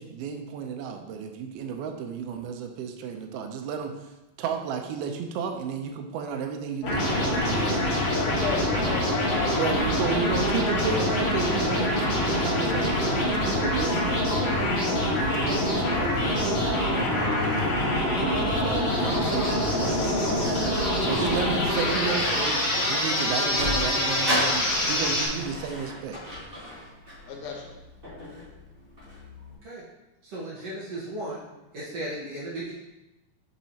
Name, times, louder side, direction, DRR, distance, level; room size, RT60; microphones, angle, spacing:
voice 1, 0.0-3.9 4.4-8.0 9.6-17.7 18.1-20.6 21.0-26.2 26.7-26.9, right 6 dB, 85° right, 4 dB, 2.6 m, -33 dB
sound 1, 6.8-25.3, left 1 dB, 50° left, 2.6 m, -25 dB
voice 2, 8.1-11.1 27.3-27.7, left 5 dB, 80° left, 0 dB, 2.8 m, -35 dB
Dog, 9.5-9.8 13.7-14.5 16.7-17.5 19.0-19.7 20.7-21.4 21.9-23.4 24.1-24.2, left 1 dB, 20° left, 2.2 m, -39 dB
Sliding door, 23.0-29.5, left 1 dB, 20° right, 2.0 m, -34 dB
voice 3, 30.2-31.4 31.7-32.7, right 1 dB, 55° right, -7 dB, 2.0 m, -35 dB
7.2 x 6.5 x 2.8 m, 0.99 s
omnidirectional pair, 4.3 m